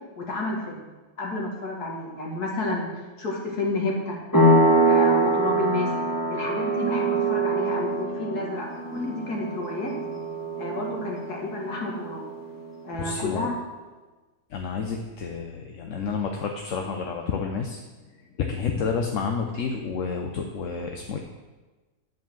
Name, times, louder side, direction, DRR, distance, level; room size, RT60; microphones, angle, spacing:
voice 1, 0.2-0.8 1.2-2.9 3.2-4.2 4.9-5.9 6.3-10.0 10.6-12.3 12.8-13.5, left 2 dB, 75° left, -1 dB, 2.5 m, -30 dB
sound 1, 4.3-12.7, right 2 dB, 15° left, 1.3 m, -24 dB
voice 2, 13.0-13.5 14.5-17.8 18.4-21.2, left 5 dB, 60° left, 3 dB, 1.0 m, -29 dB
10.0 x 5.3 x 7.3 m, 1.2 s
omnidirectional pair, 1.7 m